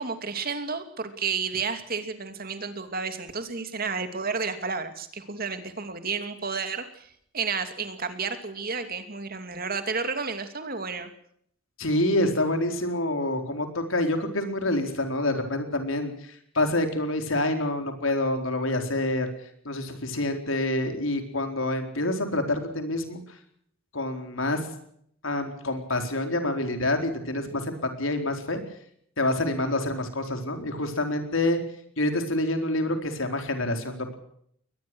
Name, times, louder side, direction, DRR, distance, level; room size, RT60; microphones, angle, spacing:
voice 1, 0.0-11.1, right 5 dB, 45° right, 8 dB, 2.7 m, -31 dB
voice 2, 11.8-16.1 16.5-19.3 19.6-23.2 23.9-24.6 25.2-28.6 29.2-31.6 32.0-34.2, left 1 dB, 80° left, 5 dB, 4.4 m, -27 dB
22.5 x 20.5 x 6.3 m, 0.68 s
head